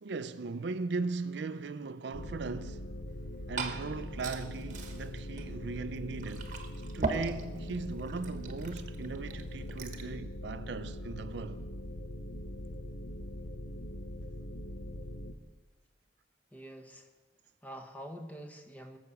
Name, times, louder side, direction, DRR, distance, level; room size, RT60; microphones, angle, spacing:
voice 1, 0.0-3.0 3.5-6.6 6.9-11.6, right 3 dB, 65° right, 0.5 m, -38 dB
sound 1, 2.1-15.3, left 1 dB, 75° left, 0.9 m, -42 dB
Liquid, 3.1-10.1, right 3 dB, 40° right, 1.2 m, -41 dB
voice 2, 16.5-17.1 17.6-19.0, equal, 10° left, 1.1 m, -46 dB
17.5 x 7.1 x 7.1 m
head